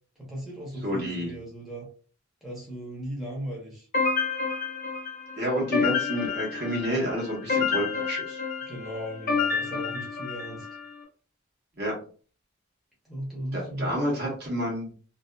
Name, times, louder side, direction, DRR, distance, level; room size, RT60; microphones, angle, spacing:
voice 1, 0.2-1.9 2.4-3.9 8.7-10.7 13.0-13.9, right 1 dB, ahead, -5 dB, 0.8 m, -37 dB
voice 2, 0.8-1.3 5.4-8.4 11.8-11.9 13.5-14.9, equal, 50° right, -2 dB, 1.1 m, -29 dB
sound 1, 3.9-10.9, left 5 dB, 40° left, 0.8 m, -29 dB
2.5 x 2.3 x 2.2 m, 0.40 s
head